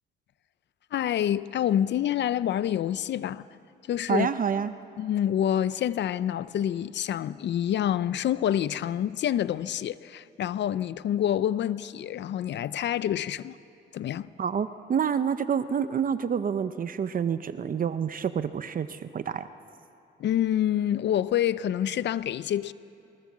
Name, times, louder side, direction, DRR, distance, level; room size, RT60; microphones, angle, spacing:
voice 1, 0.9-3.5 3.9-4.3 5.0-13.6 13.9-14.3 20.2-22.7, left 10 dB, 65° left, 0.6 m, -27 dB
voice 2, 4.1-4.7 14.4-19.5, right 7 dB, 45° right, 0.8 m, -28 dB
22.5 x 21.0 x 7.4 m
cardioid pair, 90°, 20 cm